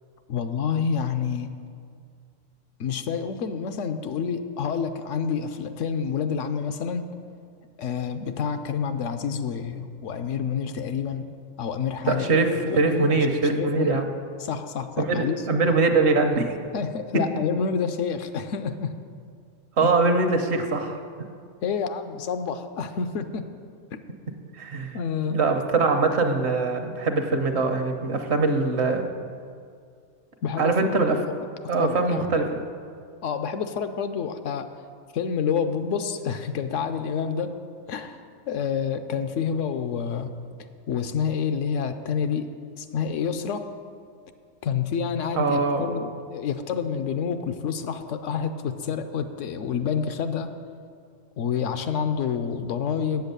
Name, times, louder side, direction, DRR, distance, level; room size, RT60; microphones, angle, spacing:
voice 1, 0.3-1.5 2.8-7.1 7.8-11.3 11.6-12.3 12.7-14.0 14.4-15.4 16.7-18.9 21.6-23.4 23.9-24.0 24.9-25.4 30.4-31.3 31.8-32.3 33.2-34.7 35.1-37.5 37.9-38.2 38.5-40.3 40.9-42.5 42.8-43.7 44.6-50.5 51.4-53.3, left 6 dB, 75° left, 9 dB, 0.9 m, -28 dB
voice 2, 12.1-14.1 15.0-16.6 19.8-21.0 24.6-25.0 25.3-29.1 30.6-31.2 31.7-32.4 45.4-46.1, right 3 dB, 60° right, 5 dB, 1.0 m, -22 dB
8.1 x 7.8 x 6.7 m, 2.2 s
omnidirectional pair, 1.3 m